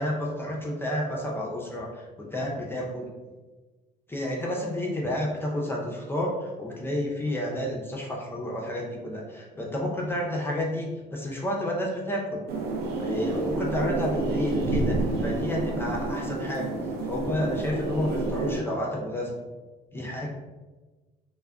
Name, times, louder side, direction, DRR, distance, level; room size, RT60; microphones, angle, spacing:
voice 1, 0.0-3.1 4.1-12.4 13.0-16.8 17.0-19.5 19.9-20.3, left 1 dB, 15° left, -2 dB, 0.5 m, -30 dB
sound 1, 12.5-18.6, right 2 dB, 70° right, 0.5 m, -29 dB
2.3 x 2.1 x 3.4 m, 1.2 s
cardioid pair, 110°, 17 cm